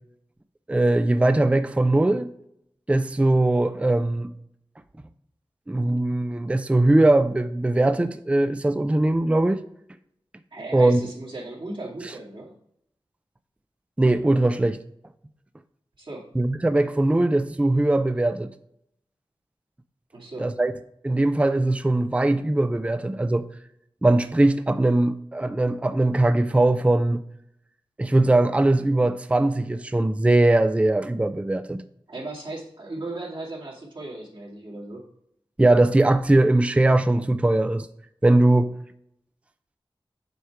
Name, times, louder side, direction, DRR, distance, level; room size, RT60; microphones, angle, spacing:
voice 1, 0.7-2.3 2.9-4.3 5.7-9.6 10.7-11.0 14.0-14.8 16.4-18.5 20.4-20.7 21.0-23.5 24.0-27.2 28.0-31.8 35.6-37.9 38.2-38.7, right 2 dB, 15° right, 0.4 m, -20 dB
voice 2, 10.5-12.6 16.0-16.2 20.1-20.5 32.1-35.0, right 2 dB, 60° right, 2.2 m, -36 dB
8.0 x 4.4 x 4.6 m
wide cardioid pair, 70°, 10 cm